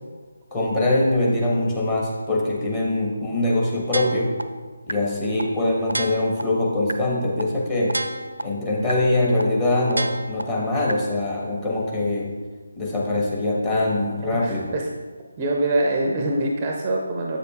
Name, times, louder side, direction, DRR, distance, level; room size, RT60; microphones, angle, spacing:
voice 1, 0.5-4.3 4.9-8.0 8.4-12.3 12.8-14.7, left 2 dB, 15° left, -4 dB, 1.1 m, -23 dB
sound 1, 3.9-4.4 4.9-5.0 5.4-5.5 5.9-6.4 6.9-7.0 7.4-7.5 7.9-8.4 8.9-9.0 9.4-9.5 9.9-10.4 10.9-11.0, right 2 dB, 70° right, 0.5 m, -27 dB
voice 2, 14.4-14.8 15.4-17.4, right 2 dB, 20° right, 0 dB, 0.5 m, -24 dB
7.7 x 6.6 x 2.4 m, 1.4 s
figure-of-eight pair, 150°, 0 cm